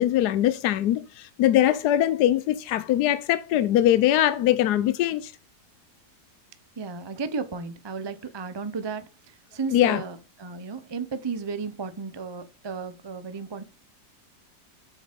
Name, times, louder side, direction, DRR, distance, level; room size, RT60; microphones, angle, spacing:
voice 1, 0.0-5.3 9.7-10.0, left 12 dB, 70° left, 1.1 m, -22 dB
voice 2, 6.8-13.6, right 5 dB, 45° right, 0.3 m, -34 dB
8.1 x 7.1 x 5.2 m
omnidirectional pair, 2.0 m